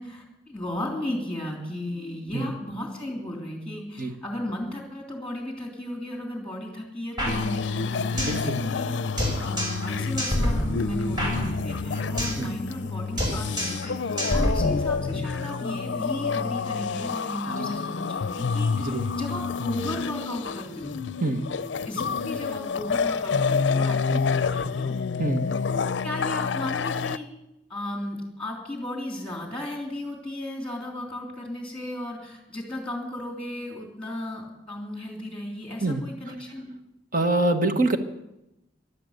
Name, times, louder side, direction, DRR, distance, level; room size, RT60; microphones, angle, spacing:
voice 1, 0.0-9.0 9.4-21.0 21.8-24.0 24.3-24.9 25.7-27.3 27.7-36.7, left 1 dB, 5° left, 1 dB, 3.2 m, -35 dB
sound 1, 7.2-8.5 8.7-8.8 9.2-9.9 10.2-12.5 12.7-12.9 13.2-13.9 14.2-15.2, equal, 25° right, 5.2 m, -28 dB
sound 2, 7.3-27.2, left 5 dB, 70° left, 0.5 m, -28 dB
voice 2, 8.2-8.6 12.4-12.5 17.5-17.7 18.8-19.0 21.2-21.5 24.1-24.2 25.2-25.5 35.8-36.0 37.1-38.0, right 2 dB, 50° right, 7 dB, 1.4 m, -25 dB
16.5 x 11.5 x 6.6 m, 0.91 s
head